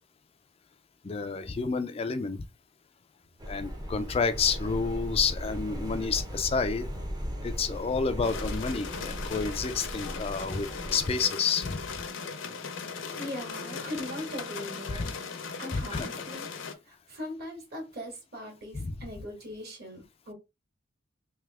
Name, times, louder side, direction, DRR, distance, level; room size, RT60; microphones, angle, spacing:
voice 1, 1.0-2.4 3.5-6.9 7.4-11.8 14.9-15.1 15.7-16.1 18.7-19.0, left 5 dB, 30° left, 0.4 m, -29 dB
sound 1, 3.4-11.1, equal, 20° right, 0.7 m, -37 dB
sound 2, 8.2-16.7, left 5 dB, 70° left, 0.7 m, -38 dB
voice 2, 13.1-15.1 15.6-20.3, left 1 dB, 50° right, 1.8 m, -40 dB
3.3 x 2.8 x 3.4 m
head